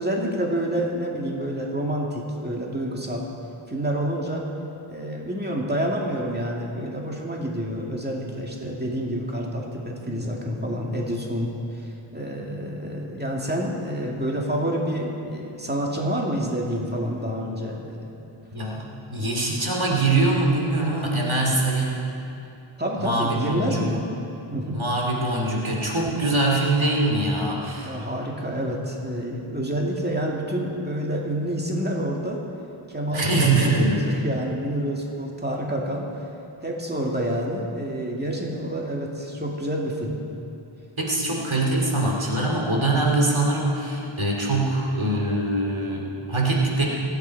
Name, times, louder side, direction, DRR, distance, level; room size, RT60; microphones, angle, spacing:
voice 1, 0.0-3.3 3.7-4.4 4.9-18.1 22.8-24.0 24.5-24.8 27.8-32.4 32.9-36.3 36.6-40.2, equal, 20° right, -2 dB, 2.2 m, -28 dB
voice 2, 18.5-22.1 23.0-23.9 24.7-27.9 33.1-34.1 41.0-46.9, right 2 dB, 75° right, -2 dB, 2.5 m, -23 dB
27.5 x 9.7 x 4.7 m, 2.7 s
wide cardioid pair, 40°, 48 cm